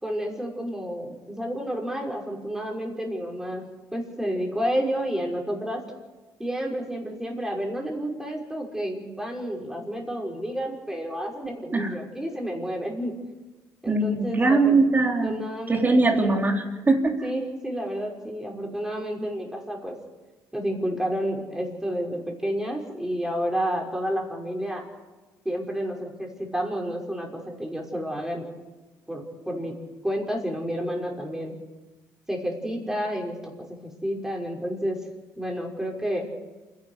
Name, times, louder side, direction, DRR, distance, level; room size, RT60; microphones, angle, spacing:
voice 1, 0.0-3.6 3.9-5.8 6.4-13.1 13.8-14.8 15.2-16.4 17.2-20.0 20.5-24.9 25.4-28.5 29.1-29.7 30.0-31.5 32.3-35.0 35.4-36.3, equal, 5° right, 0 dB, 5.8 m, -30 dB
voice 2, 13.9-17.2, right 3 dB, 25° right, 3 dB, 3.7 m, -22 dB
28.0 x 11.5 x 8.2 m, 1.2 s
cardioid pair, 95°, 8 cm